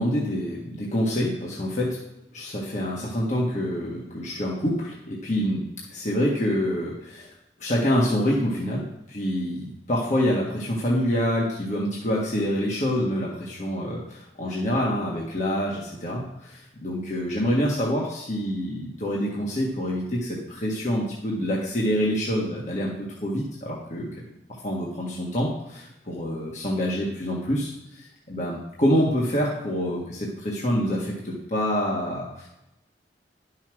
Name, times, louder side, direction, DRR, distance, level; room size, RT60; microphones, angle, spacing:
voice 1, 0.0-2.0 2.3-5.6 5.9-7.3 7.6-22.9 23.2-24.1 24.6-27.7 28.0-32.5, equal, 45° left, -3 dB, 1.7 m, -26 dB
11.0 x 5.7 x 6.2 m, 0.91 s
head